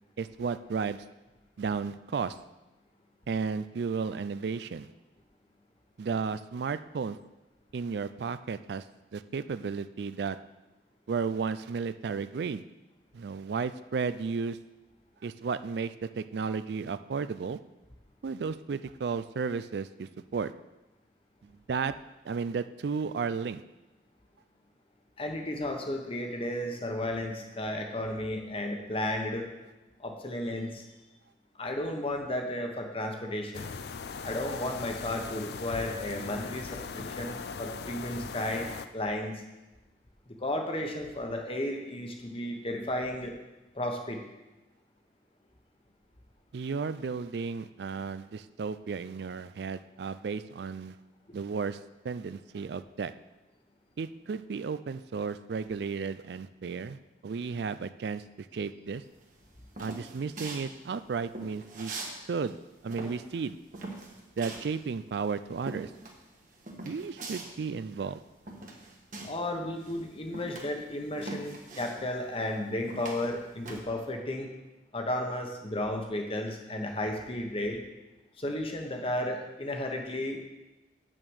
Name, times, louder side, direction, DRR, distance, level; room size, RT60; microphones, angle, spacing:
voice 1, 0.2-1.0 1.6-2.4 3.3-4.9 6.0-7.2 7.7-8.9 9.1-10.4 11.1-12.6 13.1-14.6 15.2-17.6 18.2-20.5 21.4-21.9 22.2-23.6 46.5-51.0 51.3-53.1 54.0-57.0 57.2-59.0 59.8-61.9 62.2-62.6 62.8-63.6 64.4-65.9 66.8-68.2, right 5 dB, 65° right, 13 dB, 0.4 m, -33 dB
voice 2, 25.2-29.5 30.0-30.8 31.6-33.8 34.2-39.4 40.3-43.3 43.7-44.2 51.3-51.4 69.2-74.5 74.9-77.8 78.4-80.4, left 1 dB, 30° left, 3 dB, 1.1 m, -33 dB
sound 1, 33.5-38.9, left 5 dB, 60° left, 0.5 m, -39 dB
sound 2, 59.1-62.1 62.4-69.5 69.8-73.8, right 2 dB, 45° right, 1.5 m, -42 dB
8.7 x 6.2 x 6.3 m, 1.1 s
head